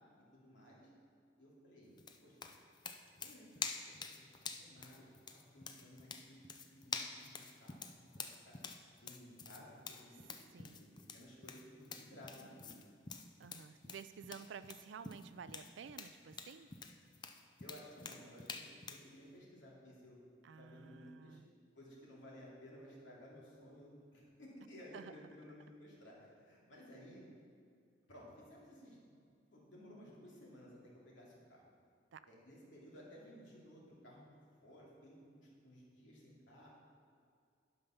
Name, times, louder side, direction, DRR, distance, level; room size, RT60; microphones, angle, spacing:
voice 1, 0.3-0.9 1.4-2.6 3.1-7.9 8.2-8.6 9.0-12.8 17.6-20.2 20.6-21.4 21.8-27.2 28.1-30.8 31.0-31.6 32.3-34.2 34.6-36.7, equal, 80° left, -5 dB, 2.6 m, -57 dB
sound 1, 2.0-19.1, left 5 dB, 25° left, 0.4 m, -48 dB
voice 2, 13.4-16.7 20.4-21.5 24.9-25.2 32.1-32.3, right 6 dB, 75° right, 13 dB, 0.4 m, -52 dB
11.0 x 5.4 x 5.7 m, 2.3 s
head